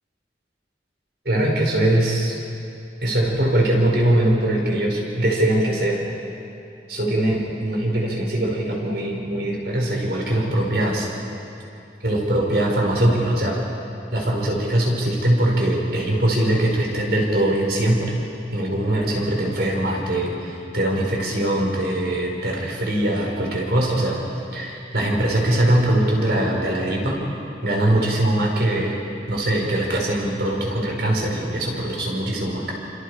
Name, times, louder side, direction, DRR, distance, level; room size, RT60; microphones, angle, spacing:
voice 1, 1.3-2.4 3.0-6.0 6.9-11.1 12.0-13.6 14.1-18.2 18.5-24.2 24.5-27.2 27.6-29.0 29.3-32.7, right 1 dB, 60° right, -1 dB, 5.2 m, -21 dB
29.0 x 26.5 x 5.0 m, 2.6 s
head